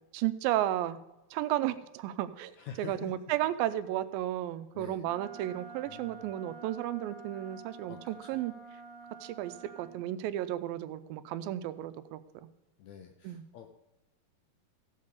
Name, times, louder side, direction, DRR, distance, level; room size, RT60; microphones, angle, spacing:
voice 1, 0.1-1.0 1.3-8.5 9.2-12.2 13.2-13.4, right 13 dB, 85° right, 13 dB, 2.4 m, -33 dB
voice 2, 2.6-3.5 4.7-5.1 5.9-6.3 7.9-8.4 12.8-13.7, left 8 dB, 75° left, 5 dB, 1.7 m, -47 dB
Wind instrument woodwind instrument, 5.0-9.9, right 4 dB, 5° left, 2.0 m, -49 dB
15.0 x 5.5 x 6.7 m, 0.97 s
omnidirectional pair, 4.1 m